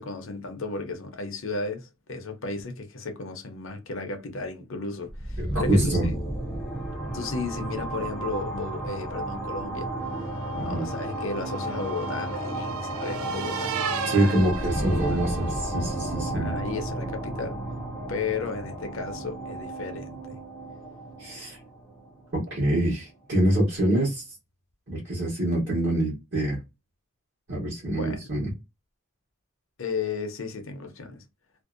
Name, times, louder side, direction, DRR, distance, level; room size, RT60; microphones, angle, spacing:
voice 1, 0.0-6.1 7.1-9.9 10.6-13.7 14.0-14.4 14.8-15.2 16.3-17.6 18.1-20.4 27.9-28.2 29.8-31.2, left 3 dB, 60° left, 0.6 m, -34 dB
sound 1, 5.1-22.8, right 1 dB, 5° left, 0.4 m, -32 dB
voice 2, 5.4-6.1 10.5-10.9 14.1-16.5 21.2-21.6 22.3-24.2 24.9-26.6 27.5-28.5, right 1 dB, 50° right, 1.0 m, -25 dB
sound 2, 10.3-15.7, right 7 dB, 70° right, 0.4 m, -36 dB
2.6 x 2.0 x 2.4 m
head